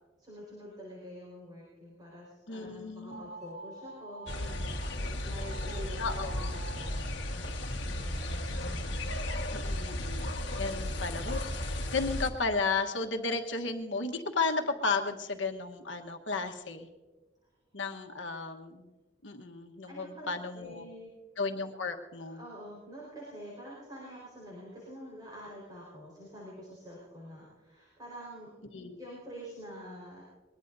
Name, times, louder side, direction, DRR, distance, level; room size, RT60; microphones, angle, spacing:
voice 1, 0.2-9.0 19.9-21.1 22.2-30.2, equal, 20° right, -5 dB, 4.6 m, -47 dB
voice 2, 2.5-3.3 6.0-6.5 9.5-16.9 17.7-18.9 19.2-20.9 21.4-22.5 28.7-29.0, left 4 dB, 90° left, 4 dB, 1.3 m, -34 dB
sound 1, 3.1-4.9 5.4-5.8 6.1-6.9, right 3 dB, 40° right, 3.5 m, -47 dB
sound 2, 4.3-12.3, left 1 dB, 70° left, 1.6 m, -35 dB
22.5 x 21.5 x 2.7 m, 1.2 s
head